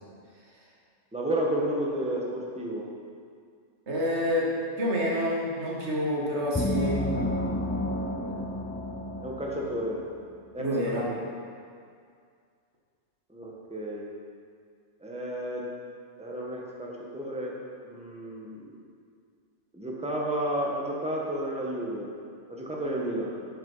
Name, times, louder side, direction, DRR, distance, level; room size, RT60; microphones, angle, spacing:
voice 1, 1.1-2.8 8.2-8.3 9.2-10.0 10.5-10.7 11.1-11.3 13.3-14.0 15.0-15.7 16.2-17.5 17.8-18.7 19.7-22.1 22.5-23.3, right 1 dB, 5° right, -3 dB, 1.4 m, -32 dB
voice 2, 3.9-7.1 10.6-11.1, equal, 60° right, -4 dB, 2.0 m, -28 dB
sound 1, 6.6-10.1, left 1 dB, 15° left, 0.3 m, -31 dB
10.0 x 6.8 x 5.6 m, 2.2 s
omnidirectional pair, 1.3 m